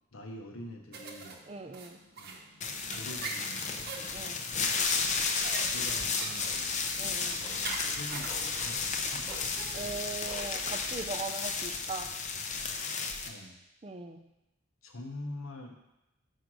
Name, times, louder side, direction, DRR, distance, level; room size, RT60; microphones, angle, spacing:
voice 1, 0.1-1.4 2.2-2.4 2.9-4.3 5.6-6.9 7.3-9.4 13.3-13.6 14.8-15.8, left 1 dB, 85° left, 3 dB, 1.0 m, -45 dB
sound 1, 0.9-9.8, right 4 dB, 50° right, 0.8 m, -44 dB
voice 2, 1.5-2.0 4.1-4.4 7.0-7.4 9.7-12.1 13.8-14.2, right 3 dB, 30° right, 7 dB, 0.4 m, -40 dB
sound 2, 2.6-13.3, left 5 dB, 35° left, 0.6 m, -33 dB
Tick-tock, 5.6-11.1, equal, 20° left, 1.0 m, -51 dB
5.1 x 4.6 x 6.1 m, 0.93 s
head